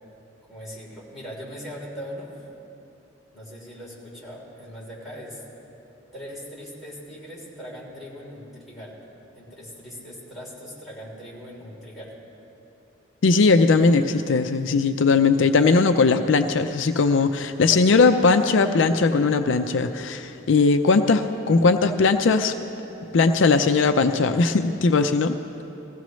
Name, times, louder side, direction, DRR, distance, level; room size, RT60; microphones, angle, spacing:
voice 1, 0.5-2.3 3.3-5.4 6.1-9.0 9.3-12.1, equal, ahead, -8 dB, 3.4 m, -40 dB
voice 2, 13.2-22.5 23.1-25.4, left 4 dB, 70° left, 8 dB, 0.5 m, -19 dB
20.5 x 15.5 x 3.1 m, 3.0 s
head